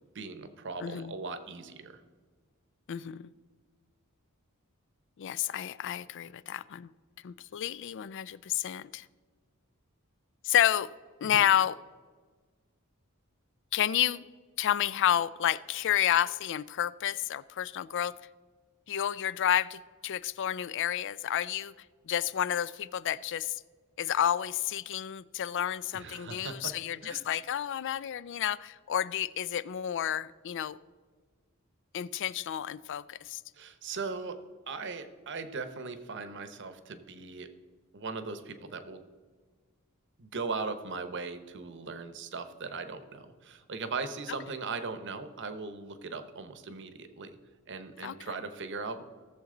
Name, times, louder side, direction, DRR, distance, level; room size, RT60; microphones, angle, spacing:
voice 1, 0.1-2.0 11.2-11.4 25.9-26.7 27.0-27.3 33.5-34.4 34.7-37.5 37.9-39.0 40.2-47.4 47.7-49.0, right 4 dB, 60° right, 10 dB, 0.9 m, -39 dB
voice 2, 0.8-1.1 2.9-3.3 5.2-6.9 7.2-9.1 10.4-10.9 11.2-11.8 13.7-14.2 14.6-18.1 18.9-21.7 22.1-23.6 24.0-30.8 31.9-33.4 48.0-48.1, left 10 dB, 60° left, 18 dB, 0.4 m, -30 dB
17.5 x 7.2 x 3.8 m, 1.5 s
head